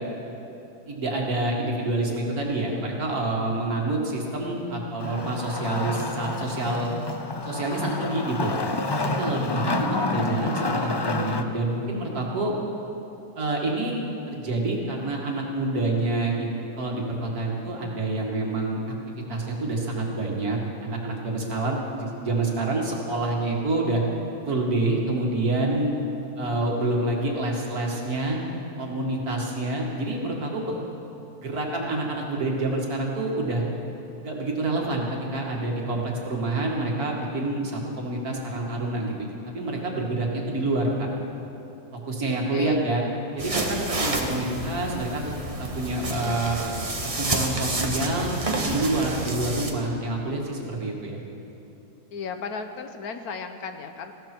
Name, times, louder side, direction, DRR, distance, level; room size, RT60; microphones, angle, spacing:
voice 1, 0.9-7.0 7.4-8.5 9.2-12.6 13.4-16.5 16.8-18.8 19.3-24.0 24.5-25.9 26.4-28.4 28.8-30.8 31.4-33.6 34.2-39.3 39.5-41.1 42.1-43.0 43.3-45.2 45.6-46.6 47.0-48.3 48.6-51.2, right 2 dB, 75° right, -1 dB, 2.6 m, -27 dB
Wood, 5.0-11.4, left 3 dB, 40° left, 0.3 m, -29 dB
voice 2, 42.3-42.8 52.1-54.1, left 5 dB, 75° left, 7 dB, 1.5 m, -35 dB
sound 1, 43.4-49.7, right 2 dB, 25° right, 1.2 m, -29 dB
19.5 x 15.5 x 4.6 m, 2.9 s
omnidirectional pair, 1.6 m